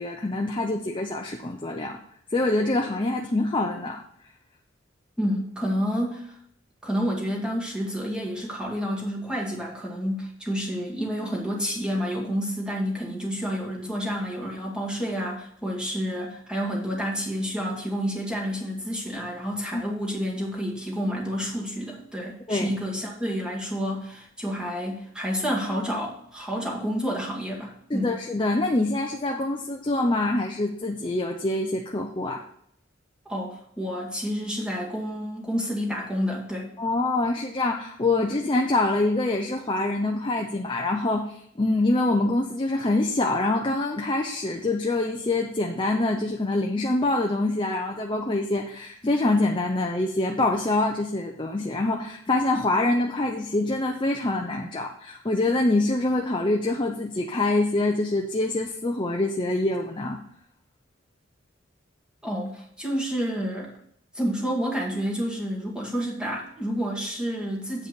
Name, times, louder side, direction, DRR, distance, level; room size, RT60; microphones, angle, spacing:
voice 1, 0.0-2.0 2.3-4.0 19.7-19.9 22.5-22.7 27.9-32.4 36.8-60.2, left 2 dB, 25° left, 1 dB, 0.7 m, -25 dB
voice 2, 5.2-6.3 6.8-28.1 33.3-36.7 62.2-63.7 64.1-67.9, equal, 5° right, -3 dB, 2.1 m, -29 dB
8.2 x 5.3 x 5.3 m, 0.68 s
head